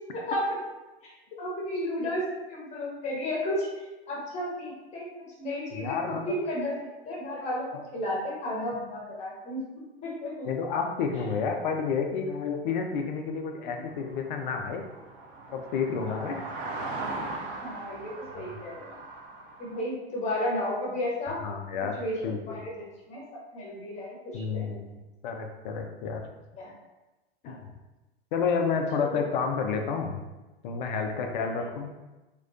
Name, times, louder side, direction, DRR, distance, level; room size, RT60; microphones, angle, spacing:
voice 1, 0.1-0.6 1.0-2.2 2.5-3.7 4.1-5.1 5.4-6.8 7.0-9.6 10.0-10.5 13.6-13.8 16.0-16.4 17.6-18.9 19.6-21.4 22.0-24.7 26.6-26.7 27.4-27.6 28.9-29.2 31.3-31.5, left 1 dB, 20° left, -4 dB, 0.8 m, -33 dB
voice 2, 5.7-6.2 10.5-14.8 15.5-16.4 17.0-17.2 18.5-18.6 21.4-22.6 24.3-26.2 27.4-27.7 28.3-30.2 30.6-31.9, left 5 dB, 50° left, 4 dB, 0.4 m, -30 dB
sound 1, 13.8-19.8, right 2 dB, 45° right, 0.5 m, -39 dB
2.3 x 2.1 x 2.5 m, 1.1 s
figure-of-eight pair, 95°, 31 cm